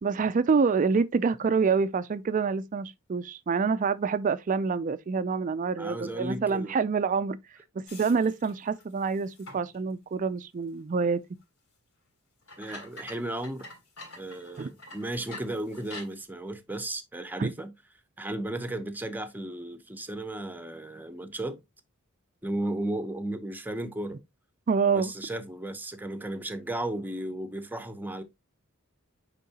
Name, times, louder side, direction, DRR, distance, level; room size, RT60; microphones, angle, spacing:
voice 1, 0.0-7.4 7.8-11.2 14.6-14.7 17.4-17.5 24.7-25.1, right 5 dB, 35° right, 0.4 m, -26 dB
voice 2, 5.8-6.8 12.6-13.7 14.2-17.7 18.2-21.6 22.4-24.2 24.9-28.2, right 1 dB, 10° right, 0.7 m, -35 dB
sound 1, 7.9-9.8 10.3-10.4 11.4-11.5 12.4-16.2, left 2 dB, 65° left, 3.5 m, -46 dB
9.2 x 3.7 x 2.8 m
head